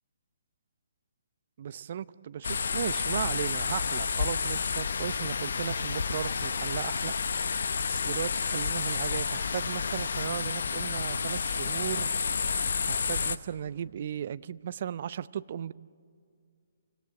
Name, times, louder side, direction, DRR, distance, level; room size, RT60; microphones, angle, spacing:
voice 1, 1.6-12.1 12.9-15.7, right 9 dB, 50° right, 16 dB, 0.7 m, -36 dB
sound 1, 2.4-13.4, left 5 dB, 60° left, 0.9 m, -30 dB
28.0 x 25.5 x 7.6 m, 2.2 s
figure-of-eight pair, 135°, 0 cm